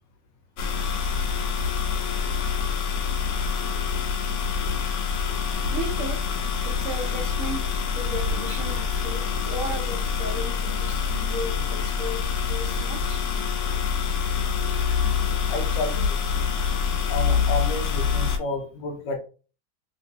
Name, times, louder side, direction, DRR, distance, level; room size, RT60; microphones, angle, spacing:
sound 1, 0.6-18.4, left 6 dB, 85° left, 1.4 m, -26 dB
voice 1, 4.7-5.4 5.7-6.2 6.6-7.6 8.0-13.2 18.4-18.5, right 2 dB, 75° right, -1 dB, 0.7 m, -35 dB
voice 2, 15.5-16.2 17.1-19.2, left 2 dB, 70° left, 4 dB, 1.2 m, -31 dB
3.0 x 3.0 x 2.7 m, 0.37 s
omnidirectional pair, 2.2 m